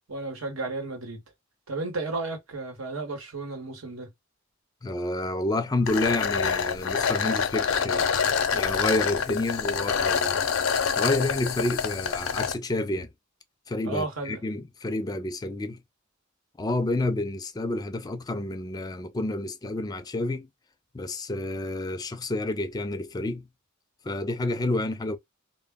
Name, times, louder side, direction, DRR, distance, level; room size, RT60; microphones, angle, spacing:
voice 1, 0.1-1.2 1.7-4.1 13.8-14.4, right 3 dB, 85° right, 1.0 m, -33 dB
voice 2, 4.8-8.1 8.5-10.4 11.0-13.1 13.7-15.8 16.6-20.5 20.9-23.5 24.0-25.2, left 2 dB, 20° left, 0.3 m, -29 dB
sound 1, 5.9-12.5, left 6 dB, 85° left, 0.5 m, -26 dB
2.1 x 2.0 x 3.4 m
head